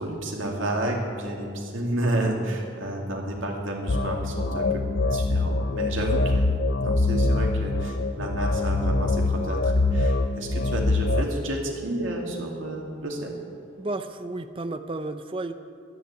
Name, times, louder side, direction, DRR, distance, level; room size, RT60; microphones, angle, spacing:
voice 1, 0.0-6.5 6.8-13.3, right 1 dB, 90° right, 0 dB, 2.4 m, -30 dB
sound 1, 3.9-11.2, left 2 dB, 55° left, 0.5 m, -24 dB
voice 2, 13.8-15.5, right 2 dB, 25° right, 8 dB, 0.5 m, -32 dB
11.5 x 9.3 x 8.6 m, 2.3 s
head